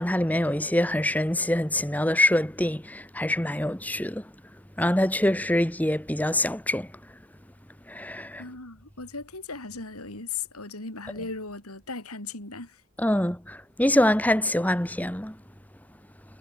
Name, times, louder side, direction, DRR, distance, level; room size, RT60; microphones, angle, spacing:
voice 1, 0.0-4.2 4.8-6.9 7.9-8.4 13.0-15.4, left 1 dB, 5° left, 1.8 m, -25 dB
voice 2, 8.4-12.8, left 4 dB, 85° left, 5.9 m, -37 dB
head